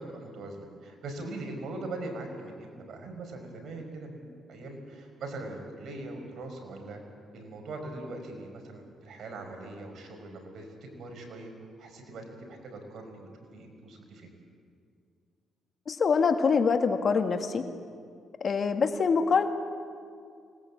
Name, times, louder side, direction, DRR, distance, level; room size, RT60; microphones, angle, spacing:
voice 1, 0.0-7.0 7.3-11.5 11.8-13.3 13.5-14.3, right 2 dB, 65° right, 3 dB, 5.5 m, -41 dB
voice 2, 15.9-17.7 18.4-19.5, left 5 dB, 50° left, 7 dB, 1.7 m, -24 dB
26.0 x 19.0 x 8.6 m, 2.2 s
cardioid pair, 90°, 0 cm